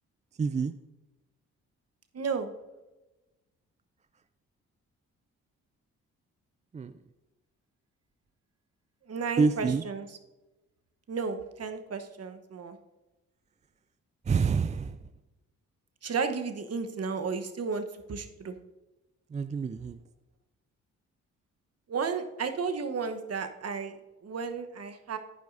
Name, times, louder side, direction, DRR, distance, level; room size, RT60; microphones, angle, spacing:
voice 1, 0.4-0.7 6.7-6.9 9.4-9.8 14.3-15.0 19.3-20.0, right 5 dB, 20° right, 11 dB, 0.4 m, -27 dB
voice 2, 2.1-2.5 9.1-10.1 11.1-12.8 16.0-18.5 21.9-23.9 24.2-25.2, right 5 dB, 45° right, 8 dB, 1.1 m, -33 dB
11.5 x 9.2 x 2.6 m, 1.1 s
hypercardioid pair, 40°, 36 cm